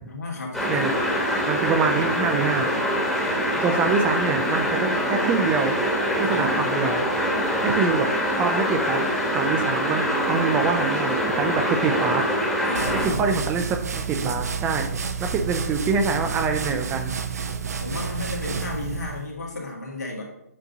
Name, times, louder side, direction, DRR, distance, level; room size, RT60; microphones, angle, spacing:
voice 1, 0.1-0.9 6.2-6.9 12.6-13.4 17.8-20.2, left 2 dB, 80° left, -1 dB, 1.9 m, -34 dB
sound 1, 0.5-13.1, equal, 5° left, 1.1 m, -24 dB
voice 2, 1.5-2.7 3.6-5.8 6.1-7.0 7.6-9.1 9.3-12.2 12.9-13.7 13.9-17.2, right 5 dB, 15° right, 6 dB, 0.4 m, -25 dB
sound 2, 12.7-19.3, right 6 dB, 70° right, 0.7 m, -30 dB
7.5 x 2.6 x 5.0 m, 0.82 s
hypercardioid pair, 145°, 9 cm